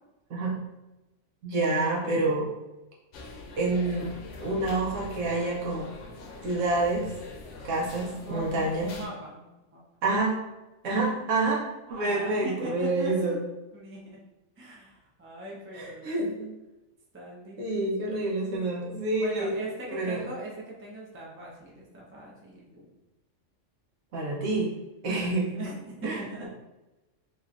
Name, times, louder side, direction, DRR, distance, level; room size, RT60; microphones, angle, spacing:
voice 1, 1.4-2.5 3.6-4.1 4.4-5.8 6.4-7.0 7.6-8.9 10.0-10.4 10.8-11.6 11.9-13.4 15.7-16.5 17.6-19.5 19.9-20.2 24.1-24.7 25.0-25.6 26.0-26.5, right 2 dB, 80° right, -4 dB, 1.2 m, -27 dB
sound 1, 3.1-9.1, left 2 dB, 75° left, 0.9 m, -43 dB
voice 2, 8.2-9.8 11.2-11.3 11.9-13.3 13.7-14.2 14.6-16.1 17.1-18.6 19.2-22.9 25.5-26.5, right 1 dB, 15° right, -4 dB, 0.4 m, -41 dB
3.1 x 3.1 x 2.4 m, 1.0 s
omnidirectional pair, 1.3 m